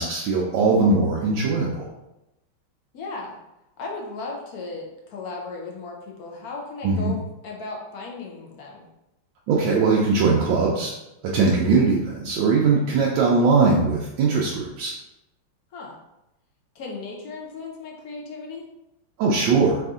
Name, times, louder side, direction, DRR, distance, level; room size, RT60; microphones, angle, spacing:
voice 1, 0.0-1.9 6.8-7.1 9.5-10.9 11.2-14.9 19.2-19.8, right 4 dB, 75° right, -3 dB, 1.3 m, -20 dB
voice 2, 2.9-3.4 3.8-7.2 7.4-8.9 15.7-16.0 16.7-18.6, left 3 dB, 65° left, -1 dB, 0.9 m, -36 dB
4.1 x 2.6 x 3.5 m, 0.90 s
omnidirectional pair, 2.3 m